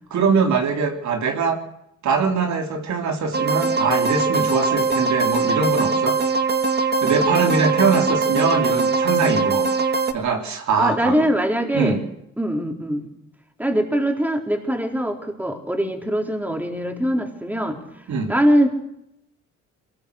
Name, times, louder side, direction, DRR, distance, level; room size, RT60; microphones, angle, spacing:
voice 1, 0.1-1.6 2.0-6.2 7.0-9.7 10.1-11.3 11.7-12.0 18.1-18.3, right 5 dB, 65° right, 4 dB, 3.2 m, -22 dB
sound 1, 3.3-10.1, right 4 dB, 35° right, 1.7 m, -21 dB
voice 2, 10.8-12.0 12.4-13.1 13.6-17.8 18.3-18.7, equal, 5° right, 3 dB, 4.2 m, -22 dB
22.5 x 20.0 x 6.7 m, 0.79 s
cardioid pair, 90°, 30 cm